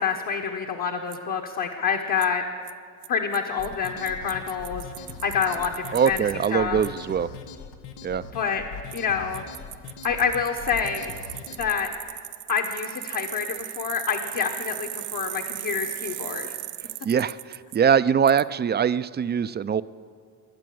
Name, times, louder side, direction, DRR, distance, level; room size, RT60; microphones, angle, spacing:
voice 1, 0.0-2.4 3.1-4.9 5.2-6.2 6.5-6.8 8.3-8.6 8.9-9.4 10.0-11.1 11.6-11.9 12.5-16.5, left 6 dB, 50° left, 2 dB, 1.3 m, -27 dB
Bicycle, 1.1-1.2 2.2-2.3 2.7-2.8 3.0-3.1 3.3-3.4 3.6-6.5 6.8-6.9 8.9-9.0 9.3-17.8 18.3-18.4, right 16 dB, 80° right, 0.6 m, -37 dB
sound 1, 3.6-11.7, left 5 dB, 90° left, 1.1 m, -41 dB
voice 2, 5.9-7.3 8.0-8.2 17.0-19.8, right 7 dB, 25° right, 15 dB, 0.4 m, -22 dB
22.5 x 7.6 x 7.8 m, 2.1 s
cardioid pair, 85°, 40 cm